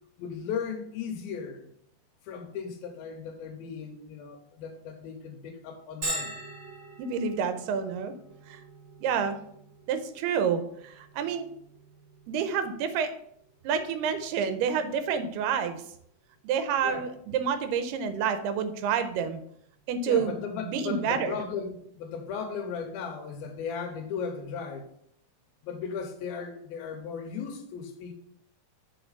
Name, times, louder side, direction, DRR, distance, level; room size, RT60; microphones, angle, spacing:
voice 1, 0.2-1.7 2.3-6.3 16.8-17.1 20.0-24.9 25.6-28.1, left 6 dB, 75° left, 2.5 m, -36 dB
Bell, 6.0-21.5, right 1 dB, 30° right, 2.7 m, -45 dB
voice 2, 7.0-8.1 8.5-8.6 9.0-9.4 9.9-11.5 12.3-13.1 13.6-15.8 16.4-19.4 19.9-20.4 20.6-21.4, right 7 dB, 85° right, 2.7 m, -28 dB
7.0 x 4.5 x 5.5 m
omnidirectional pair, 4.6 m